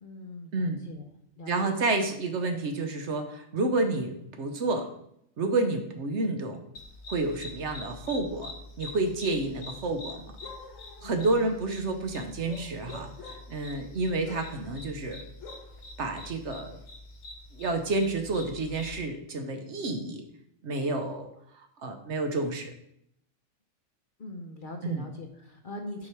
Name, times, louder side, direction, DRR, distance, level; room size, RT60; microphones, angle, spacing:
voice 1, 0.0-1.1 1.4-1.7 11.0-11.6 24.2-26.1, left 2 dB, 45° left, 3 dB, 0.8 m, -42 dB
voice 2, 0.5-0.8 1.5-4.9 5.4-6.6 7.1-8.5 8.8-10.3 11.0-13.1 13.5-15.2 16.0-16.8 17.5-20.2 20.6-21.3 21.5-22.7 24.8-25.1, right 2 dB, 60° right, 5 dB, 1.1 m, -29 dB
sound 1, 6.7-19.0, left 2 dB, 75° left, 1.4 m, -45 dB
6.0 x 4.9 x 4.5 m, 0.74 s
omnidirectional pair, 1.4 m